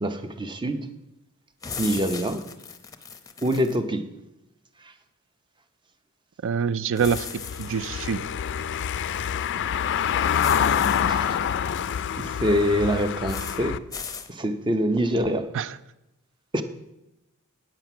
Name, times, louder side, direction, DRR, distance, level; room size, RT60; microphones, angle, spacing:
voice 1, 0.0-0.9 1.8-2.4 3.4-4.0 11.1-11.5 12.2-13.8 14.3-15.5 16.5-16.6, equal, 20° right, 9 dB, 0.6 m, -25 dB
sound 1, 1.6-3.8 7.0-7.9 10.4-11.0 13.3-13.6 13.9-14.3, left 5 dB, 15° left, 0.6 m, -37 dB
voice 2, 6.4-7.3 7.6-8.3 15.5-15.8, right 6 dB, 65° right, 18 dB, 0.4 m, -25 dB
Car passing by / Engine, 7.0-13.8, left 8 dB, 55° left, 0.4 m, -26 dB
9.1 x 7.6 x 5.8 m, 0.92 s
head